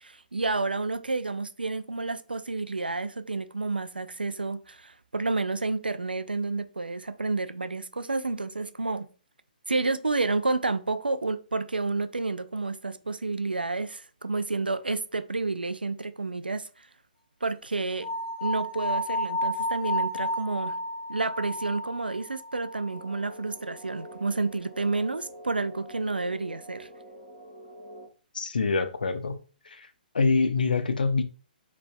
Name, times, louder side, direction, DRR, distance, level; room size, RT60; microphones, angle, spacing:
voice 1, 0.0-9.1 9.7-16.9 17.4-18.1 18.4-20.8 21.1-26.9, right 3 dB, 80° right, 0.5 m, -30 dB
sound 1, 18.0-23.1, left 1 dB, 40° left, 1.7 m, -32 dB
sound 2, 22.9-28.1, equal, 30° right, 1.9 m, -46 dB
voice 2, 28.3-29.9 30.1-31.2, left 4 dB, 65° left, 0.7 m, -26 dB
6.5 x 3.3 x 2.2 m
figure-of-eight pair, 130°, 5 cm